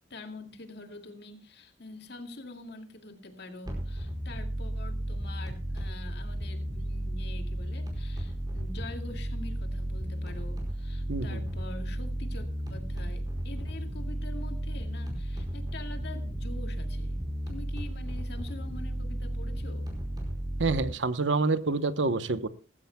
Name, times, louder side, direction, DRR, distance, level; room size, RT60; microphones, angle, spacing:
voice 1, 0.1-17.2 17.5-19.9, left 2 dB, 65° left, 5 dB, 2.2 m, -45 dB
sound 1, 3.6-20.9, right 1 dB, 20° right, 4.8 m, -34 dB
voice 2, 11.1-11.4 20.6-22.5, right 3 dB, 80° right, 13 dB, 0.9 m, -27 dB
18.5 x 15.5 x 2.2 m, 0.34 s
head